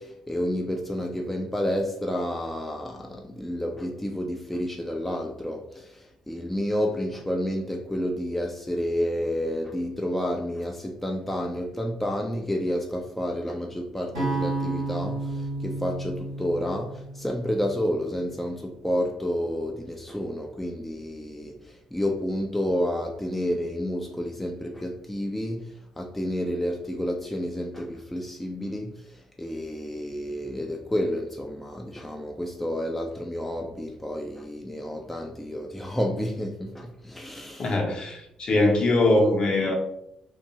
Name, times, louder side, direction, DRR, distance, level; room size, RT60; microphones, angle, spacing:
voice 1, 0.0-37.8, equal, 5° left, 0.3 m, -30 dB
sound 1, 14.1-18.3, right 2 dB, 85° right, 0.8 m, -32 dB
voice 2, 37.6-39.8, left 2 dB, 45° left, 0.7 m, -22 dB
2.5 x 2.2 x 2.8 m
figure-of-eight pair, 45°, 2 cm